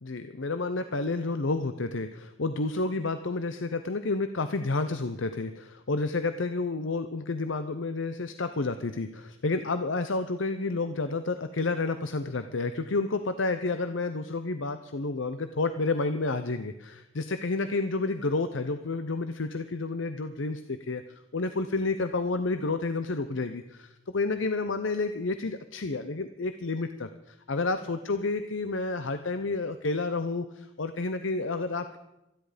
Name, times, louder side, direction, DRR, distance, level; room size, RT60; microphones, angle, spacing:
voice 1, 0.0-32.0, left 3 dB, 70° left, 10 dB, 0.8 m, -30 dB
26.5 x 10.5 x 5.1 m, 0.94 s
head